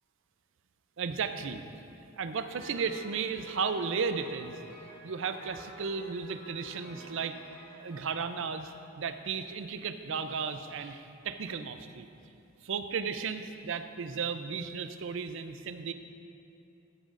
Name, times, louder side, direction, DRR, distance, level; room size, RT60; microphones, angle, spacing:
voice 1, 1.0-1.6 2.2-4.6 5.0-7.4 7.8-12.1 12.6-15.9, right 5 dB, 65° right, 10 dB, 0.5 m, -34 dB
Piano, 2.4-9.2, right 1 dB, 20° left, 2.2 m, -51 dB
14.0 x 9.1 x 2.5 m, 2.6 s
head